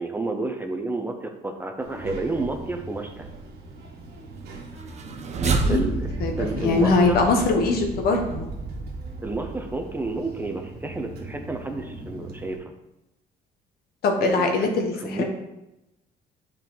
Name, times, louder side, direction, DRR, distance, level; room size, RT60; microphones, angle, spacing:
voice 1, 0.0-3.3 5.7-6.1 6.4-7.2 9.2-12.6 14.2-14.7 15.0-15.2, right 3 dB, 10° right, 4 dB, 0.8 m, -30 dB
Child speech kid speaking, 1.8-12.6, right 2 dB, 70° right, 1.5 m, -40 dB
sound 1, 4.8-10.1, right 3 dB, 40° right, 0.8 m, -30 dB
voice 2, 6.2-8.5 14.0-15.2, left 3 dB, 65° left, 3 dB, 1.3 m, -22 dB
7.9 x 4.5 x 4.0 m, 0.92 s
cardioid pair, 110°, 17 cm